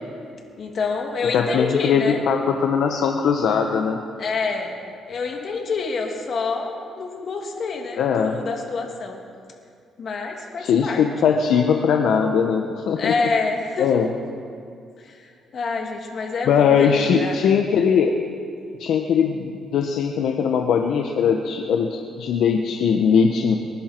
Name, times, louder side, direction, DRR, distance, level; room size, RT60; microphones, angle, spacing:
voice 1, 0.6-2.2 4.2-4.7 5.1-9.2 10.0-11.0 13.0-13.9 15.0-17.5, left 4 dB, 55° left, 1 dB, 2.7 m, -27 dB
voice 2, 1.3-4.0 8.0-8.4 10.6-13.1 13.8-14.1 16.5-18.1 18.8-23.6, left 6 dB, 75° left, 3 dB, 1.0 m, -20 dB
27.5 x 11.0 x 4.6 m, 2.3 s
cardioid pair, 90°, 0 cm